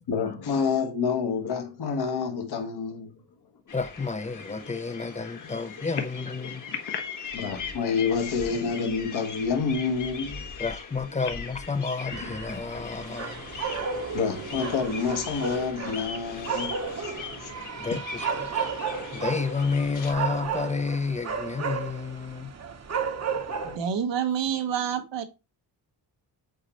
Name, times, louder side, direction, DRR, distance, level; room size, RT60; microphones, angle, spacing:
voice 1, 0.1-3.1 6.7-7.0 7.3-10.6 12.8-12.9 14.1-17.5, left 5 dB, 60° left, 1.3 m, -28 dB
sound 1, 3.7-20.1, left 5 dB, 45° left, 1.4 m, -40 dB
voice 2, 3.7-6.7 10.6-13.4 17.8-18.7 19.1-22.5, left 4 dB, 15° left, 0.4 m, -30 dB
sound 2, 12.1-23.8, right 5 dB, 40° right, 0.9 m, -33 dB
voice 3, 23.6-25.2, right 8 dB, 90° right, 1.2 m, -28 dB
7.6 x 4.3 x 2.9 m
wide cardioid pair, 135°, 42 cm